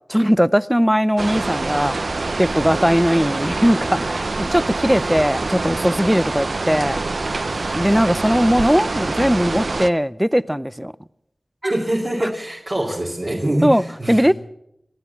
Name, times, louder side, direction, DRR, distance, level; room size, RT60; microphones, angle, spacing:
voice 1, 0.1-2.0 2.4-7.0 7.7-10.9 12.2-12.3 13.6-13.8 14.1-14.3, equal, 5° right, 0.5 m, -19 dB
sound 1, 1.2-9.9, right 3 dB, 65° right, 0.5 m, -25 dB
voice 2, 7.5-7.9 8.4-8.5 11.6-14.3, right 1 dB, 45° right, 2.9 m, -24 dB
26.5 x 9.4 x 5.8 m
wide cardioid pair, 60°, 0 cm